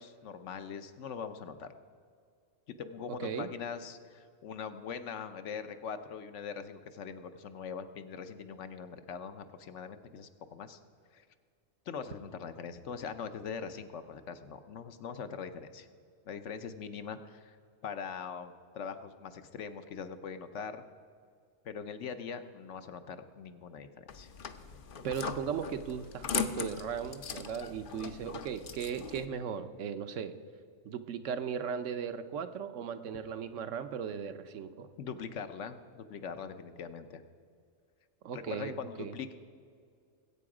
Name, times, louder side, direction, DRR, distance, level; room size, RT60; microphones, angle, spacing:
voice 1, 0.0-1.7 2.7-10.8 11.1-11.2 11.9-15.9 16.3-17.6 17.8-20.8 21.6-24.3 35.0-37.2 38.3-39.4, left 6 dB, 70° left, 9 dB, 1.0 m, -42 dB
sound 1, 24.1-29.3, left 7 dB, 50° left, 0.7 m, -39 dB
voice 2, 25.0-30.3 30.8-34.9 38.2-39.1, right 7 dB, 70° right, 10 dB, 1.1 m, -37 dB
20.0 x 8.5 x 4.9 m, 2.2 s
omnidirectional pair, 1.4 m